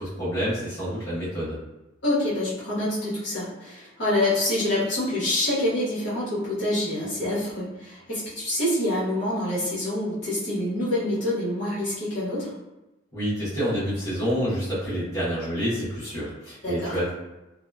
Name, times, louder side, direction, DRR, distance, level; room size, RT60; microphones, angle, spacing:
voice 1, 0.0-1.6 13.1-17.2, equal, 15° left, -12 dB, 0.9 m, -28 dB
voice 2, 2.0-12.5 16.6-17.0, left 1 dB, 70° left, -9 dB, 1.1 m, -26 dB
2.7 x 2.2 x 2.2 m, 1.0 s
head